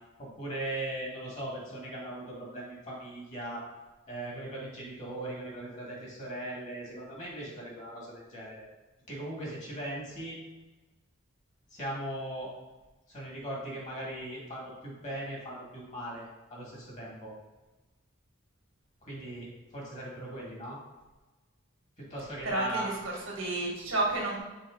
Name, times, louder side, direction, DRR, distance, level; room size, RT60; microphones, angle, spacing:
voice 1, 0.2-3.6 4.1-8.6 9.1-10.4 11.7-12.5 13.1-17.3 19.0-20.8 22.0-22.9, right 1 dB, 35° left, -4 dB, 2.0 m, -39 dB
voice 2, 22.4-24.4, right 2 dB, 70° right, -2 dB, 1.7 m, -31 dB
6.0 x 4.3 x 3.8 m, 1.2 s
head